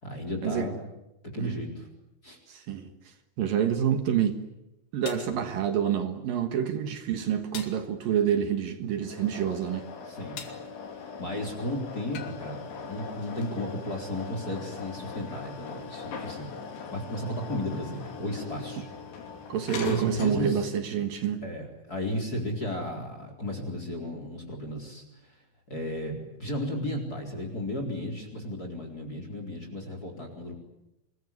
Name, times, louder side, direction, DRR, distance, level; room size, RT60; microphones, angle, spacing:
voice 1, 0.0-0.7 1.3-1.9 2.2-2.4 5.3-5.5 10.1-10.5 11.2-16.5 16.9-18.9 19.8-20.7 21.4-25.4 25.7-30.6, left 1 dB, 20° left, 4 dB, 4.1 m, -34 dB
voice 2, 2.5-2.9 3.4-4.4 4.9-9.9 19.5-21.4, right 9 dB, 60° right, 8 dB, 2.7 m, -27 dB
sound 1, 5.1-5.4 7.5-7.8 10.4-10.7 12.1-12.4, left 7 dB, 60° left, 3.8 m, -41 dB
sound 2, 9.0-20.7, left 5 dB, 75° left, 5.6 m, -41 dB
26.0 x 21.5 x 9.8 m, 0.91 s
omnidirectional pair, 5.4 m